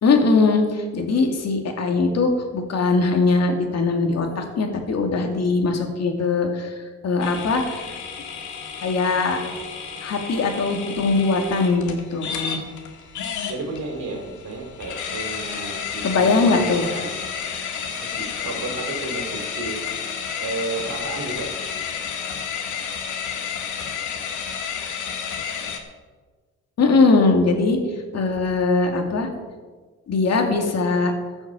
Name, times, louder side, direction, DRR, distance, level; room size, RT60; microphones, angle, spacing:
voice 1, 0.0-8.0 8.8-9.4 10.0-12.6 16.0-16.8 26.8-27.8 28.1-29.3 30.1-31.1, left 3 dB, 55° left, 3 dB, 2.5 m, -21 dB
sound 1, 7.2-25.8, left 7 dB, 80° left, 1.8 m, -31 dB
voice 2, 13.4-17.2 17.9-19.8 20.4-21.5, right 3 dB, 65° right, 3 dB, 3.1 m, -32 dB
14.5 x 6.3 x 7.6 m, 1.4 s
cardioid pair, 90°, 30 cm